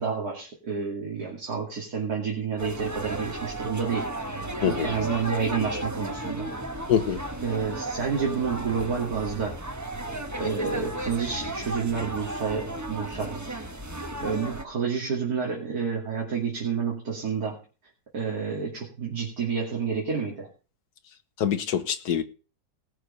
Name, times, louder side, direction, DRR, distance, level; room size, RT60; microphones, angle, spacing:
voice 1, 0.0-4.3 4.6-6.5 7.4-9.6 10.4-13.4 14.2-17.6 18.1-20.5, right 6 dB, 55° right, 3.1 m, -29 dB
sound 1, 2.6-14.6, right 1 dB, 10° right, 0.9 m, -34 dB
voice 2, 4.6-4.9 6.9-7.2 21.4-22.2, left 8 dB, 65° left, 1.7 m, -24 dB
18.5 x 6.5 x 5.5 m
omnidirectional pair, 1.9 m